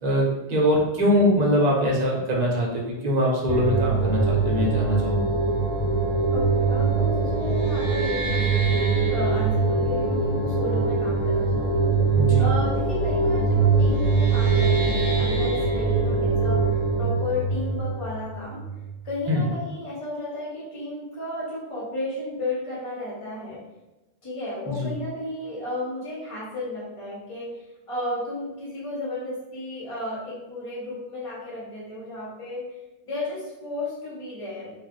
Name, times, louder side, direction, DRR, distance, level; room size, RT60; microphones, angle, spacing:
voice 1, 0.0-5.3 12.2-12.5 19.3-19.4 24.7-24.9, equal, 45° right, -2 dB, 0.8 m, -23 dB
sound 1, 3.5-18.9, right 4 dB, 20° right, 0.4 m, -23 dB
voice 2, 6.3-8.8 9.1-11.9 12.4-16.7 17.0-18.6 19.0-23.6 24.2-32.6 33.0-34.7, left 1 dB, 35° left, -7 dB, 1.0 m, -33 dB
2.5 x 2.4 x 3.6 m, 1.0 s
omnidirectional pair, 1.0 m